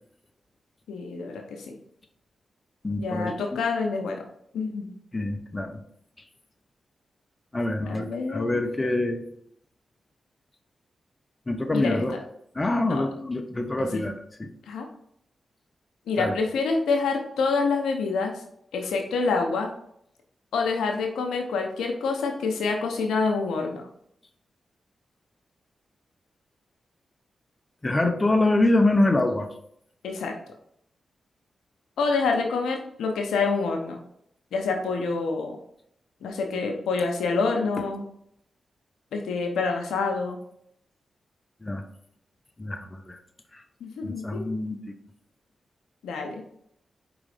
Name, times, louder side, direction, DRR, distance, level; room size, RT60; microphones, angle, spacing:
voice 1, 0.9-1.7 3.0-4.2 4.5-4.9 7.9-8.6 11.7-12.0 12.8-13.0 13.9-14.0 14.7-14.9 16.1-18.4 18.7-19.7 20.5-23.9 30.0-30.3 32.0-34.0 34.5-35.6 36.2-38.0 39.1-40.4 43.8-44.4 46.0-46.4, left 4 dB, 90° left, 3 dB, 0.8 m, -27 dB
voice 2, 2.8-3.6 5.1-5.8 7.5-9.2 11.5-12.1 12.5-14.5 16.2-16.4 27.8-29.5 41.6-41.8 42.6-43.2 43.5-43.6 44.0-44.9, left 2 dB, 30° left, 5 dB, 0.9 m, -25 dB
4.9 x 4.0 x 4.9 m, 0.70 s
supercardioid pair, 40°, 0 cm